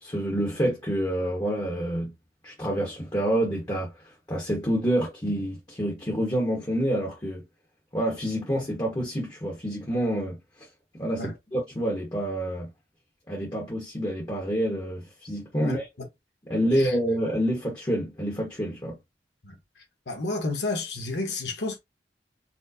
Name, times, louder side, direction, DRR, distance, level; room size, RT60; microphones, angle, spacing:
voice 1, 0.0-2.1 2.4-3.9 4.3-7.4 7.9-10.4 10.9-12.7 13.3-15.8 16.5-19.0, equal, 20° left, 1.1 m, -27 dB
voice 2, 16.6-17.0 19.4-21.8, left 2 dB, 80° left, 1.2 m, -32 dB
4.3 x 2.2 x 2.8 m
head